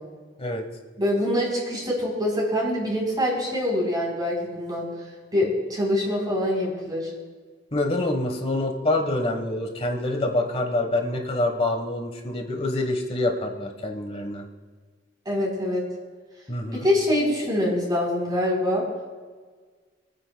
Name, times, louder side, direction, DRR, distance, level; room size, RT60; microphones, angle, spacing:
voice 1, 1.0-4.9 5.3-7.1 15.3-15.8 16.7-18.8, left 1 dB, 25° right, -3 dB, 3.9 m, -24 dB
voice 2, 7.7-14.4 16.5-16.8, left 2 dB, 30° left, 4 dB, 1.4 m, -26 dB
24.5 x 9.5 x 2.3 m, 1.5 s
head